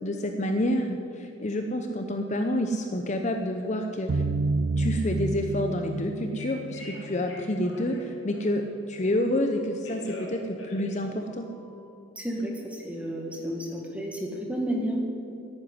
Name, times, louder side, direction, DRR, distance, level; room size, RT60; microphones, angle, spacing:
voice 1, 0.0-4.2 4.8-11.5, left 1 dB, 35° left, 5 dB, 0.7 m, -28 dB
sound 1, 4.1-7.8, right 3 dB, 85° right, 0.5 m, -29 dB
Telephone, 6.2-8.7 9.5-11.9, left 1 dB, 65° left, 2.7 m, -45 dB
voice 2, 12.2-15.0, right 1 dB, 5° right, 0 dB, 1.8 m, -31 dB
11.0 x 9.8 x 9.7 m, 2.8 s
head